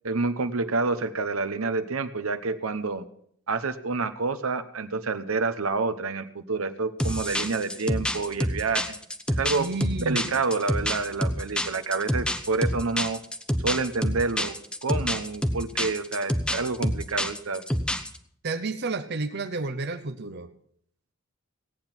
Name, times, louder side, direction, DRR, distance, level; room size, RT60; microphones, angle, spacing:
voice 1, 0.0-3.0 3.5-9.0 9.4-9.7 10.1-13.2 13.6-14.6 14.8-17.6, right 3 dB, 80° right, 10 dB, 0.9 m, -28 dB
sound 1, 7.0-18.2, equal, 5° left, 0.7 m, -27 dB
voice 2, 9.6-10.4 18.4-20.5, right 3 dB, 50° right, 8 dB, 0.8 m, -31 dB
17.0 x 9.0 x 5.9 m, 0.66 s
head